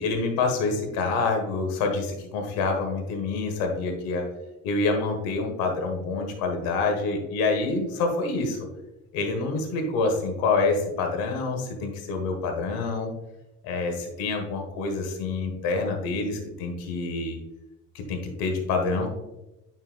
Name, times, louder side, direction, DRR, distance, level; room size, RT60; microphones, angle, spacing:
voice 1, 0.0-4.3 4.6-8.6 9.1-13.1 13.6-17.4 17.9-19.1, left 3 dB, 80° left, 4 dB, 1.4 m, -27 dB
9.6 x 4.5 x 2.2 m, 0.98 s
cardioid pair, 105°, 35 cm